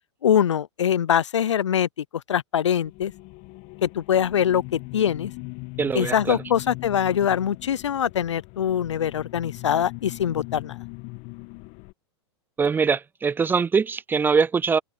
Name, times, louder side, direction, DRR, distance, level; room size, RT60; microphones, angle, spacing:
voice 1, 0.2-3.1 3.8-5.3 5.9-10.8, left 9 dB, 80° left, 0.6 m, -23 dB
sound 1, 2.8-11.9, left 26 dB, 45° left, 1.5 m, -40 dB
voice 2, 5.8-6.4 12.6-14.8, right 5 dB, 15° right, 0.4 m, -22 dB
hypercardioid pair, 105°, 15 cm